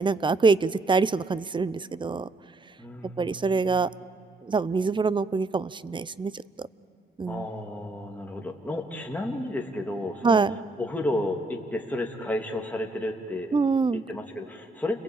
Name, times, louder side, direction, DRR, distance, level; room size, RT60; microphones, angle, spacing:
voice 1, 0.0-2.3 3.2-3.9 4.5-6.3 7.2-7.5 10.2-10.6 13.5-14.0, right 4 dB, 25° right, 19 dB, 0.6 m, -24 dB
voice 2, 2.8-3.8 7.3-10.4 10.8-13.5 13.9-15.0, left 1 dB, 10° left, 1 dB, 2.9 m, -32 dB
29.5 x 21.5 x 8.8 m, 2.3 s
cardioid pair, 90°, 20 cm